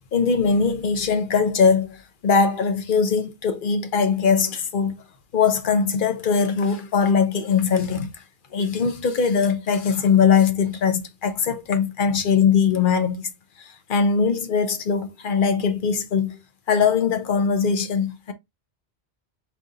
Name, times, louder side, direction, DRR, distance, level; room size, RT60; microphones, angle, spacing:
voice 1, 0.1-4.9 5.3-8.1 8.5-13.3 13.6-16.4 16.7-18.3, left 6 dB, 55° left, 0.9 m, -21 dB
4.5 x 3.8 x 2.6 m
omnidirectional pair, 1.1 m